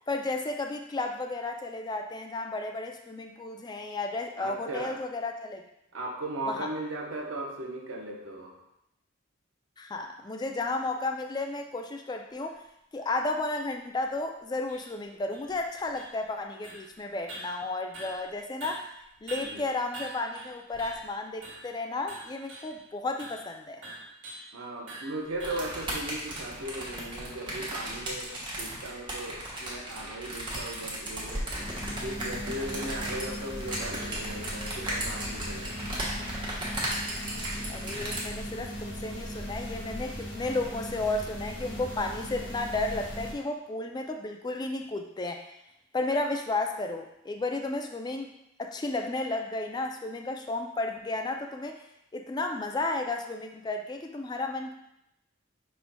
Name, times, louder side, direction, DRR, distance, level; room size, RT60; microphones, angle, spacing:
voice 1, 0.1-5.6 6.5-6.7 9.8-12.6 12.9-18.9 19.2-23.8 37.7-45.5 45.9-48.3 48.6-51.8 52.1-54.7, left 2 dB, 20° left, 4 dB, 0.3 m, -33 dB
voice 2, 4.4-5.0 5.9-8.6 19.4-19.7 24.5-31.5 32.0-35.9, right 1 dB, 90° right, 0 dB, 0.8 m, -37 dB
sound 1, 12.4-12.5 13.0-13.1 13.6-13.7 14.0-14.1 14.7-14.9 15.3-16.4 16.6-16.9 17.3-18.4 18.6-21.1 21.4-21.8 22.1-22.8 23.2-23.5 23.8-24.5 24.9-25.9, right 2 dB, 75° right, 1.3 m, -44 dB
sound 2, 25.4-38.2, right 1 dB, 25° right, 1.0 m, -36 dB
sound 3, 31.6-43.3, equal, 60° left, 1.1 m, -38 dB
5.4 x 4.3 x 2.2 m, 0.85 s
head